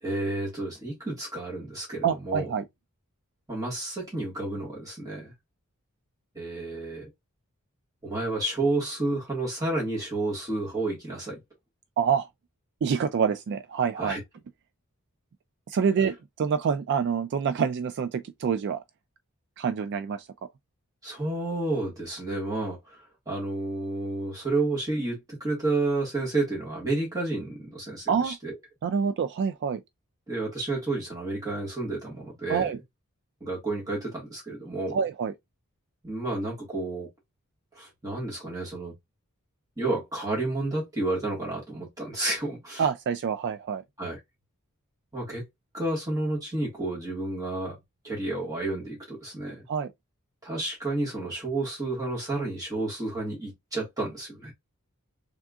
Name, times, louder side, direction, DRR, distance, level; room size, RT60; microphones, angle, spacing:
voice 1, 0.0-2.5 3.5-5.3 6.3-7.1 8.0-11.4 14.0-14.2 21.0-28.5 30.3-32.7 33.4-35.0 36.0-37.1 37.7-38.9 39.8-42.8 44.0-44.2 45.1-45.4 45.7-47.8 48.0-49.6 50.4-54.5, right 2 dB, 15° right, 1.5 m, -31 dB
voice 2, 2.0-2.6 12.0-12.3 12.8-14.2 15.7-18.8 19.6-20.3 28.1-28.4 28.8-29.8 32.5-32.8 34.9-35.3 42.8-43.8 49.7-49.9, right 6 dB, 55° right, 0.3 m, -26 dB
3.6 x 3.5 x 2.3 m
head